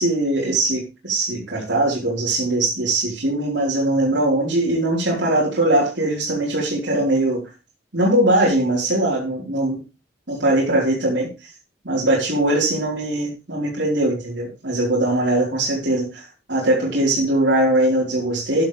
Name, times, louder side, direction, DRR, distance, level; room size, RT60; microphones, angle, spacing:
voice 1, 0.0-7.4 7.9-9.8 10.3-11.3 11.8-18.6, right 1 dB, 75° right, -5 dB, 4.4 m, -21 dB
12.5 x 10.5 x 3.4 m, 0.28 s
head